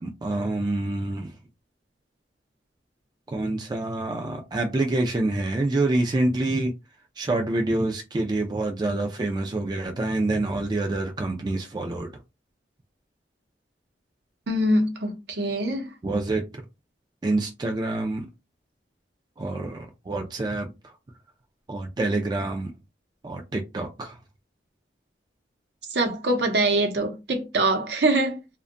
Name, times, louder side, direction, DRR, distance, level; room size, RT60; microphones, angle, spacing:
voice 1, 0.0-1.4 3.3-6.7 7.2-12.1 16.0-16.4 17.2-18.3 19.4-20.9 21.7-22.7 23.2-24.2, right 2 dB, 25° right, 0.3 m, -27 dB
voice 2, 14.5-15.9 25.9-28.4, right 1 dB, 70° right, 0.7 m, -24 dB
2.6 x 2.2 x 2.5 m
head